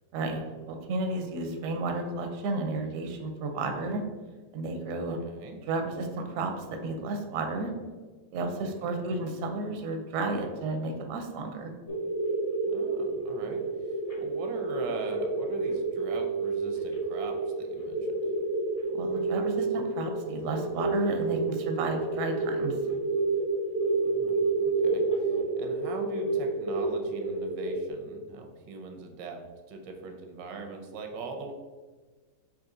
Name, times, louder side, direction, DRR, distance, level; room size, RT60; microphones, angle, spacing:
voice 1, 0.1-4.0 4.5-5.2 5.7-7.7 8.3-11.7 18.9-22.7, right 2 dB, 65° right, 4 dB, 0.8 m, -32 dB
voice 2, 4.9-5.6 8.6-9.3 12.6-18.2 24.1-29.4 29.7-31.5, right 3 dB, 85° right, 4 dB, 1.3 m, -41 dB
sound 1, 11.9-27.9, right 3 dB, 60° left, 0.3 m, -29 dB
5.1 x 2.8 x 3.7 m, 1.4 s
omnidirectional pair, 1.9 m